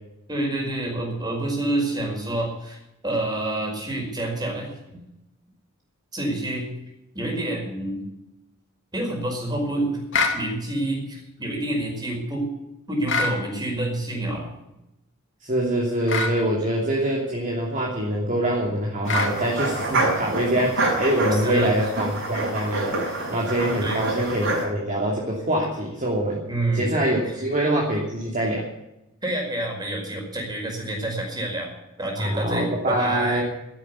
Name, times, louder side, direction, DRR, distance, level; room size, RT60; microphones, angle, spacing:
voice 1, 0.3-5.0 6.1-6.7 7.1-8.0 8.9-10.0 10.3-12.4 12.9-14.5 21.3-21.7 23.8-24.0 26.5-26.9 29.2-31.7 32.0-33.4, right 1 dB, 20° right, 1 dB, 5.2 m, -28 dB
sound 1, 10.1-10.4 13.1-13.4 16.1-16.4 19.1-19.4, left 4 dB, 60° left, 2.5 m, -23 dB
voice 2, 15.4-23.0 23.3-26.4 26.7-28.7 32.2-33.4, right 1 dB, 35° right, -3 dB, 2.9 m, -24 dB
sound 2, 19.1-24.6, right 2 dB, 55° right, 6.7 m, -26 dB
14.0 x 10.5 x 8.4 m, 0.92 s
head